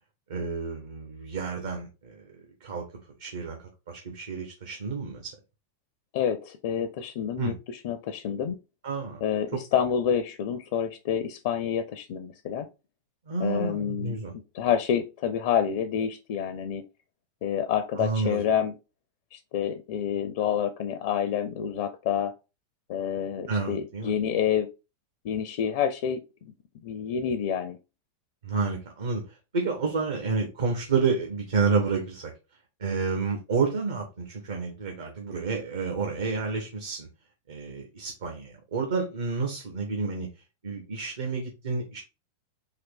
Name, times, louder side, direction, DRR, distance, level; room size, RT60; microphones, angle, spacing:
voice 1, 0.3-2.2 2.6-2.9 3.2-5.3 7.4-7.5 8.8-9.2 13.3-14.3 18.0-18.4 23.5-24.1 28.4-32.3 32.8-37.1 37.5-40.3 40.6-42.0, right 4 dB, 60° right, 3 dB, 0.9 m, -30 dB
voice 2, 6.1-8.6 9.2-12.7 13.4-14.2 14.5-16.8 17.4-18.8 19.3-22.3 22.9-24.7 25.2-26.2 26.8-27.8, left 8 dB, 50° left, 9 dB, 0.5 m, -28 dB
3.9 x 2.7 x 3.5 m, 0.28 s
figure-of-eight pair, 90°, 0 cm